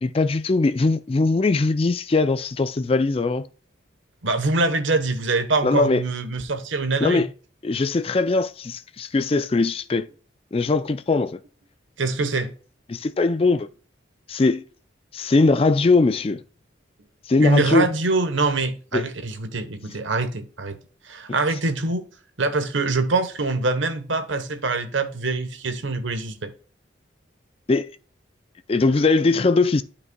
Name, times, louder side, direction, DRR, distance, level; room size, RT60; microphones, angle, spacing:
voice 1, 0.0-3.5 5.6-6.0 7.0-7.3 7.6-10.1 10.5-11.4 12.9-13.7 14.3-14.6 15.1-16.4 17.3-17.9 18.9-19.0 27.7-27.9 28.7-29.8, left 3 dB, 30° left, 0.4 m, -20 dB
voice 2, 4.2-7.2 12.0-12.5 17.4-20.8 21.1-22.1 22.4-26.5, right 3 dB, 80° right, 1.1 m, -24 dB
12.5 x 5.3 x 2.2 m
head